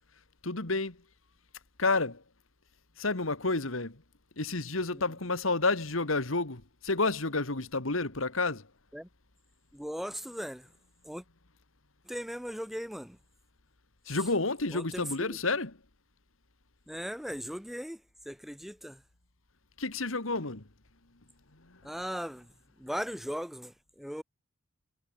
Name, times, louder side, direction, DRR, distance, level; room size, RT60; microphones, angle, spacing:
voice 1, 0.4-1.0 1.8-2.2 3.0-4.0 4.4-8.7 14.1-15.7 19.8-20.7 21.6-21.9, left 3 dB, 90° left, 2.4 m, -30 dB
voice 2, 9.7-10.7 11.0-11.2 12.1-13.2 14.1-14.2 14.7-15.4 16.9-18.0 18.3-19.0 21.8-22.5 22.8-24.2, equal, ahead, 0.6 m, -38 dB
head